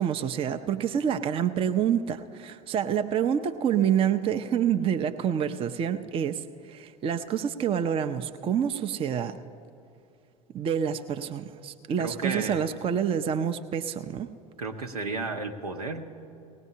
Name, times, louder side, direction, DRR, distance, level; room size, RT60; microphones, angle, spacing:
voice 1, 0.0-9.4 10.5-14.3, right 8 dB, 30° right, 8 dB, 0.5 m, -27 dB
voice 2, 12.0-12.8 14.6-16.1, right 3 dB, 85° right, 4 dB, 0.8 m, -33 dB
19.5 x 17.0 x 2.8 m, 2.7 s
figure-of-eight pair, 70°, 19 cm